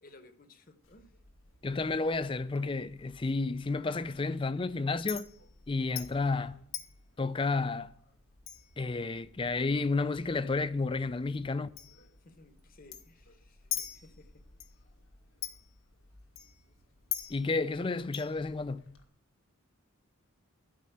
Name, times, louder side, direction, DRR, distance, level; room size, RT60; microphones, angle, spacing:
voice 1, 0.0-1.1 12.2-14.4, left 2 dB, 40° left, 1.1 m, -58 dB
Chink clink, 0.8-19.0, left 11 dB, 80° left, 1.8 m, -46 dB
voice 2, 1.6-5.3 5.7-6.6 7.2-7.9 8.8-11.7 17.3-18.9, left 3 dB, 25° left, 0.4 m, -31 dB
12.5 x 5.4 x 7.8 m
head